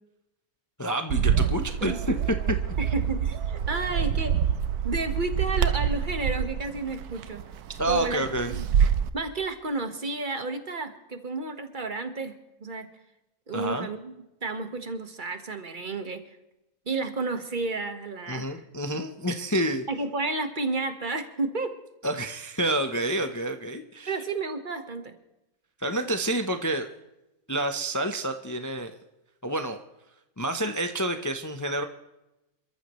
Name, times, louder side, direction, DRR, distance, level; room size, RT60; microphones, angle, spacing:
voice 1, 0.8-2.6 7.8-8.5 13.5-13.9 18.3-19.9 22.0-24.2 25.8-26.9 27.5-28.9 29.4-29.8 30.4-31.8, right 1 dB, 15° left, 6 dB, 0.7 m, -28 dB
Bird, 1.1-9.1, right 8 dB, 90° right, 1.3 m, -26 dB
voice 2, 2.8-4.4 4.8-7.4 7.9-8.6 9.1-12.3 12.6-12.9 13.5-14.2 14.4-16.2 16.9-18.6 19.9-21.7 24.1-25.1, right 3 dB, 35° right, 7 dB, 1.6 m, -31 dB
28.0 x 14.0 x 3.2 m, 0.95 s
omnidirectional pair, 1.6 m